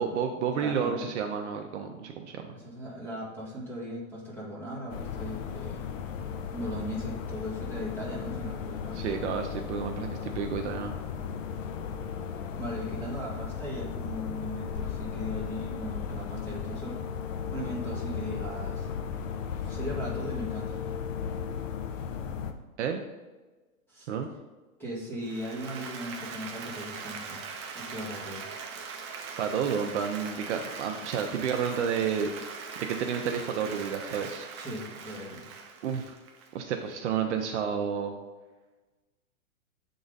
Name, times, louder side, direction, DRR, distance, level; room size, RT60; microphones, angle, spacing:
voice 1, 0.0-2.6 8.9-10.9 22.8-23.0 24.1-24.3 29.4-32.3 32.8-34.5 35.8-36.1 36.5-38.1, right 7 dB, 55° right, 4 dB, 0.7 m, -30 dB
voice 2, 0.6-1.1 2.5-5.8 6.5-9.0 12.6-17.0 17.5-18.9 19.6-20.8 23.9-24.1 24.8-27.4 27.7-28.4 34.6-35.4, equal, 5° left, -7 dB, 1.8 m, -38 dB
sound 1, 4.9-22.5, left 7 dB, 60° left, 0.8 m, -36 dB
Applause, 25.2-36.9, right 5 dB, 20° right, 0.4 m, -41 dB
7.8 x 3.9 x 3.9 m, 1.2 s
hypercardioid pair, 145°, 42 cm